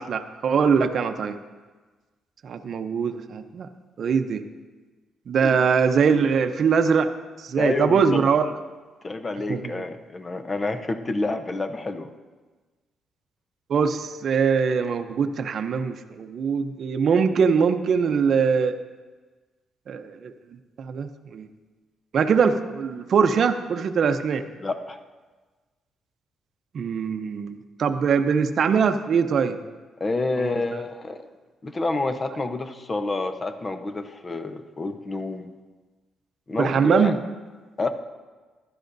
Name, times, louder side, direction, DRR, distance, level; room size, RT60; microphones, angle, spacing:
voice 1, 0.0-1.4 2.4-3.7 4.0-4.4 5.3-7.1 7.4-8.5 9.5-9.8 13.7-18.8 19.9-20.3 20.8-21.5 22.1-24.4 26.7-29.6 30.4-30.6 36.6-37.2, right 6 dB, 60° right, 8 dB, 0.7 m, -22 dB
voice 2, 7.6-8.2 9.0-12.1 24.6-25.0 30.0-31.2 31.6-35.5 36.5-37.1 37.8-37.9, left 3 dB, 30° left, 8 dB, 0.8 m, -28 dB
15.5 x 11.5 x 2.7 m, 1.3 s
cardioid pair, 90°, 0 cm